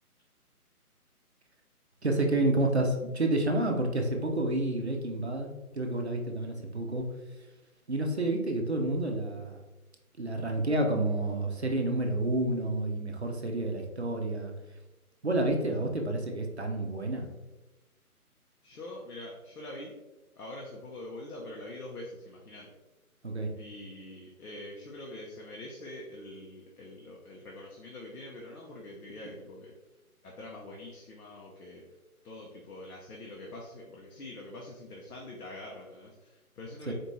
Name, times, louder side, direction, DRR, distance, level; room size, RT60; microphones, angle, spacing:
voice 1, 2.0-5.5 5.7-7.0 7.9-9.6 10.2-14.5 15.2-17.3 23.2-23.5 36.9-37.0, right 2 dB, 45° right, 2 dB, 0.5 m, -29 dB
voice 2, 18.6-19.9 20.4-22.7 23.6-29.7 30.2-31.8 32.2-36.9, left 1 dB, 75° left, -3 dB, 0.9 m, -44 dB
4.3 x 2.7 x 3.1 m, 1.1 s
hypercardioid pair, 175°, 45 cm